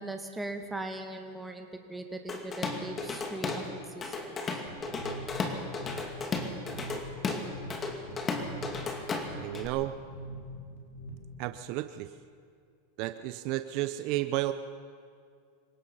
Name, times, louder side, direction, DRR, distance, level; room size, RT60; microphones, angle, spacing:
voice 1, 0.0-4.6, right 2 dB, 5° right, 4 dB, 2.1 m, -40 dB
Drum kit / Drum, 2.3-3.7 4.0-9.7, left 3 dB, 25° left, 2.4 m, -34 dB
sound 1, 4.7-11.5, equal, 70° left, 4.9 m, -44 dB
voice 2, 9.4-9.9 11.4-12.1 13.0-14.5, right 16 dB, 50° right, 11 dB, 0.7 m, -32 dB
27.0 x 17.5 x 5.7 m, 2.3 s
supercardioid pair, 130°, 0 cm